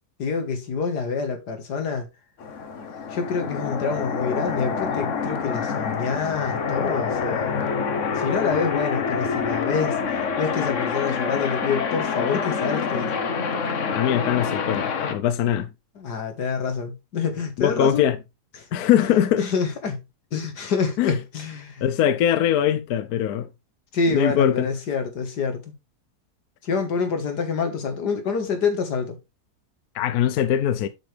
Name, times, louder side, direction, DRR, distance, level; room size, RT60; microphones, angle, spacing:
voice 1, 0.2-2.1 3.1-7.6 8.2-13.1 16.0-18.1 19.0-19.1 19.4-20.0 20.3-21.9 23.9-25.6 26.6-29.2, left 5 dB, 90° left, 2.2 m, -27 dB
sound 1, 2.4-15.1, left 6 dB, 55° left, 1.2 m, -26 dB
voice 2, 13.9-15.7 17.6-18.2 18.7-19.5 21.0-21.1 21.8-23.5 24.1-24.7 29.9-30.9, left 10 dB, 70° left, 1.1 m, -21 dB
7.5 x 6.9 x 3.3 m
omnidirectional pair, 1.7 m